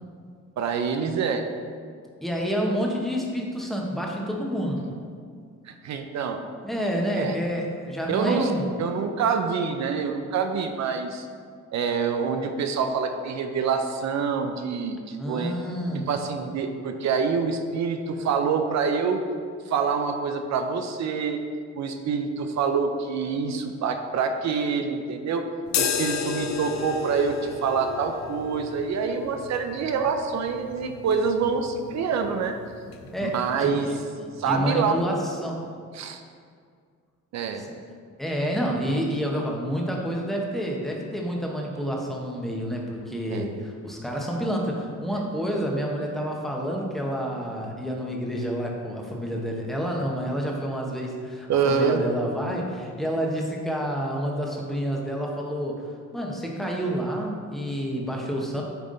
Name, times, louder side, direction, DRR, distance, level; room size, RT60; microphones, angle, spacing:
voice 1, 0.6-1.4 5.7-6.4 7.2-7.3 8.1-8.5 8.8-11.3 11.7-15.5 16.1-19.2 19.7-21.4 21.7-25.5 25.8-32.6 33.2-33.9 34.4-35.0 35.9-36.2 37.3-37.6 43.3-43.5 45.1-45.2 51.5-52.0, right 5 dB, 65° right, 6 dB, 0.6 m, -26 dB
voice 2, 2.2-4.8 6.6-8.7 15.2-16.1 33.1-33.9 34.2-35.7 38.2-58.6, equal, ahead, -1 dB, 1.1 m, -29 dB
sound 1, 25.7-33.5, left 7 dB, 65° left, 0.7 m, -33 dB
9.1 x 3.6 x 3.9 m, 2.1 s
cardioid pair, 90°, 30 cm